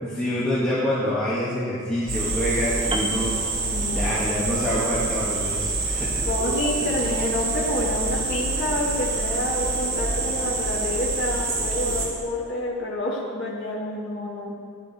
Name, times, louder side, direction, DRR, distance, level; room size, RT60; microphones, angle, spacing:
voice 1, 0.0-3.3 3.9-6.2, left 1 dB, 5° left, -10 dB, 2.1 m, -26 dB
sound 1, 2.1-12.1, right 3 dB, 70° right, 3.8 m, -26 dB
Piano, 2.9-4.3 4.6-4.9, right 2 dB, 25° right, 0.8 m, -33 dB
voice 2, 3.7-4.1 6.3-14.5, left 1 dB, 55° left, -6 dB, 1.9 m, -28 dB
15.5 x 11.5 x 4.5 m, 2.3 s
head